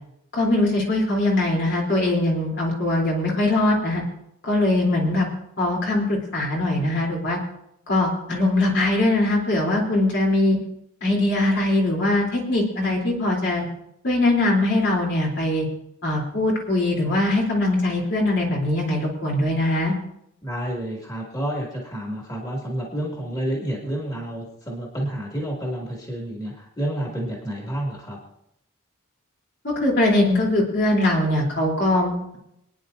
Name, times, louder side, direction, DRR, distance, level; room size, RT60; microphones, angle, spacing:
voice 1, 0.3-4.0 4.4-5.3 5.6-7.4 7.9-10.6 11.0-13.7 14.0-15.7 16.0-19.9 29.6-32.4, left 1 dB, 55° left, -2 dB, 3.5 m, -21 dB
voice 2, 20.4-28.2, right 1 dB, 20° left, -2 dB, 2.5 m, -29 dB
25.5 x 9.9 x 2.7 m, 0.78 s
head